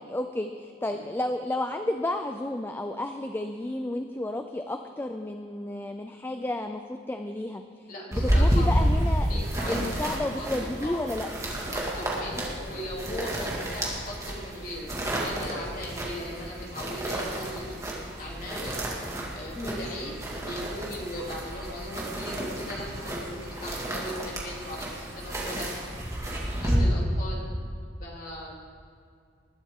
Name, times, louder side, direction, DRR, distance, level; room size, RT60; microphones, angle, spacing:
voice 1, 0.0-9.3 9.7-11.3 19.6-19.9 26.7-26.9, left 1 dB, 10° left, 6 dB, 0.4 m, -32 dB
voice 2, 7.9-8.7 9.3-11.0 11.7-14.9 15.2-18.8 19.3-25.8 26.6-27.4 28.0-28.7, left 1 dB, 50° left, -4 dB, 3.0 m, -39 dB
sound 1, 8.1-26.8, equal, 15° right, 2.1 m, -30 dB
20.0 x 11.5 x 3.7 m, 2.2 s
head